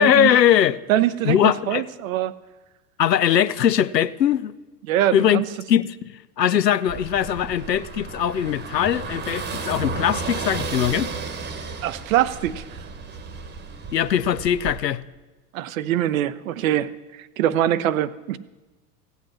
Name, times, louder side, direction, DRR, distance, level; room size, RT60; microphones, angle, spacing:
voice 1, 0.0-0.8 1.2-1.9 3.0-4.5 5.1-5.4 5.7-11.1 13.9-15.0, left 10 dB, 85° left, 0.6 m, -20 dB
voice 2, 0.9-2.3 4.9-5.4 11.8-12.6 15.5-16.9 17.2-18.4, right 12 dB, 55° right, 0.7 m, -23 dB
Car passing by / Engine, 6.9-14.8, right 4 dB, 20° right, 1.2 m, -33 dB
16.0 x 8.1 x 6.3 m
figure-of-eight pair, 90°, 48 cm